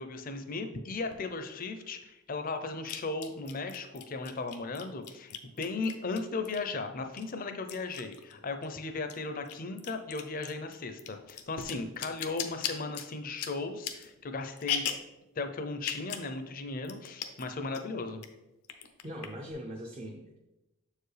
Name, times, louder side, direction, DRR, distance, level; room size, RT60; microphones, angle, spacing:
voice 1, 0.0-14.8 15.4-18.2, left 3 dB, 40° left, 7 dB, 0.5 m, -36 dB
sound 1, 1.1-1.2 2.9-6.8 7.2-8.7 9.0-15.2 15.8-16.3 16.6-16.7 16.9-17.5 17.8-18.3 18.6-19.5, left 8 dB, 85° left, 0.6 m, -38 dB
voice 2, 19.0-20.4, equal, 25° right, 1 dB, 0.5 m, -41 dB
7.2 x 4.6 x 3.3 m, 1.0 s
head